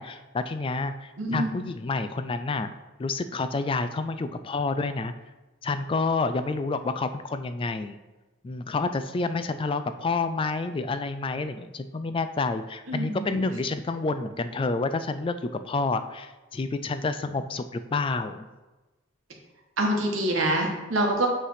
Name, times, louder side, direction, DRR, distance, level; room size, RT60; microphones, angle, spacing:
voice 1, 0.0-2.7 3.0-5.1 5.6-8.0 8.4-15.3 15.6-18.5, left 3 dB, 25° left, 10 dB, 0.3 m, -29 dB
voice 2, 1.2-1.5 12.9-13.3 19.8-21.3, right 1 dB, 80° right, 1 dB, 1.4 m, -25 dB
8.2 x 3.3 x 5.6 m, 1.1 s
head